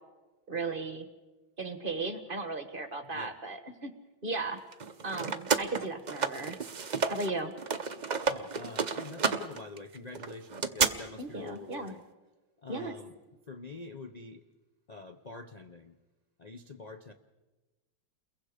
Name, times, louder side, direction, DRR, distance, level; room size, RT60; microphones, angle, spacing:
voice 1, 0.5-1.1 1.6-3.9 4.2-4.6 5.0-6.6 7.1-7.5 11.2-11.9 12.7-12.9, right 3 dB, 30° right, 8 dB, 1.3 m, -36 dB
voice 2, 3.0-3.4 8.3-12.0 12.6-13.2 13.5-14.4 14.9-16.0 16.4-17.1, left 3 dB, 55° left, 7 dB, 0.4 m, -46 dB
sound 1, 4.7-7.3 7.6-10.9, right 5 dB, 50° right, 0.5 m, -31 dB
29.5 x 22.0 x 5.1 m, 1.2 s
omnidirectional pair, 2.1 m